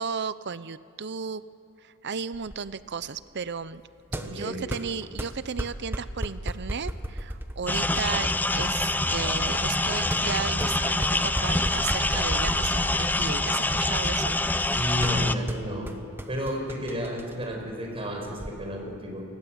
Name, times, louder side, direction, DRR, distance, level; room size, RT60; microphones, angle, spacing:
voice 1, 0.0-1.4 1.8-3.8 4.2-8.3 8.5-14.3, right 6 dB, 55° right, 15 dB, 0.6 m, -34 dB
sound 1, 2.3-18.5, equal, 10° right, 1.2 m, -37 dB
voice 2, 4.1-4.6 14.8-15.9 16.3-19.2, equal, 25° right, 1 dB, 5.4 m, -31 dB
sound 2, 7.7-15.4, left 2 dB, 10° left, 0.6 m, -25 dB
29.5 x 20.0 x 8.0 m, 3.0 s
head